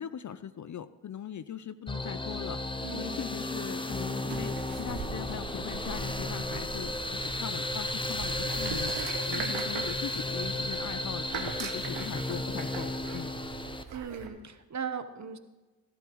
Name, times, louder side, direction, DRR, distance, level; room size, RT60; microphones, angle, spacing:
voice 1, 0.0-2.6 2.9-13.3, left 9 dB, 45° left, 14 dB, 0.5 m, -40 dB
sound 1, 1.9-13.8, left 2 dB, 10° left, 0.8 m, -34 dB
voice 2, 2.8-3.2 9.3-9.5 13.9-15.4, right 6 dB, 40° right, 10 dB, 1.0 m, -38 dB
sound 2, 4.3-14.3, right 6 dB, 90° right, 1.0 m, -41 dB
15.0 x 12.0 x 3.0 m, 1.2 s
cardioid pair, 55°, 42 cm